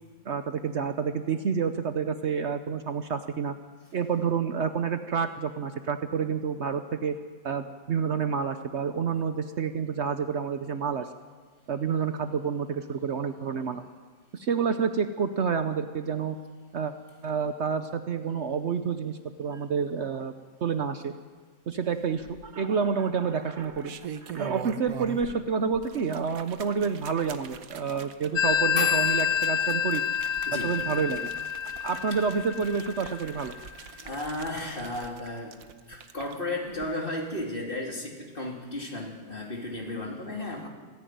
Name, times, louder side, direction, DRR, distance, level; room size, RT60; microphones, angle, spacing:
voice 1, 0.2-3.6 3.9-7.2 7.4-11.1 11.7-13.8 14.3-16.4 16.7-16.9 17.2-20.3 20.6-21.1 21.7-30.0 30.6-31.3 31.8-33.5, right 6 dB, 60° right, 9 dB, 1.0 m, -29 dB
sound 1, 22.1-22.8 23.6-25.4 25.7-36.3 36.7-36.8, right 8 dB, 80° right, 1.4 m, -43 dB
Telephone, 28.4-33.7, left 8 dB, 70° left, 1.5 m, -28 dB
voice 2, 30.4-30.8 33.0-33.1 34.0-35.6 35.9-40.7, left 1 dB, 40° left, 0 dB, 3.5 m, -34 dB
26.0 x 10.5 x 9.4 m, 1.5 s
omnidirectional pair, 1.5 m